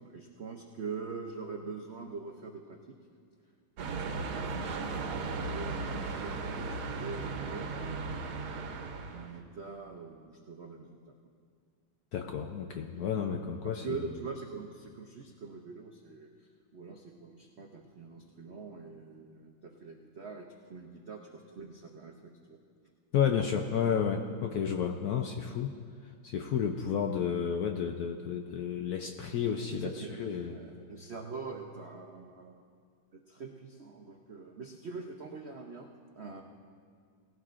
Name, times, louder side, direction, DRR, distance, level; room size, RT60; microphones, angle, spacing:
voice 1, 0.0-3.0 3.4-3.6 4.2-8.7 9.1-11.3 12.8-13.3 13.6-22.6 24.6-24.7 29.7-32.6 33.1-36.4, right 4 dB, 70° right, 1 dB, 0.6 m, -44 dB
sound 1, 3.8-9.4, right 3 dB, 90° right, 1.7 m, -36 dB
voice 2, 12.1-14.0 23.1-25.7 26.2-29.9 30.2-30.6, left 7 dB, 70° left, 4 dB, 0.9 m, -31 dB
18.5 x 16.0 x 2.5 m, 2.1 s
omnidirectional pair, 2.2 m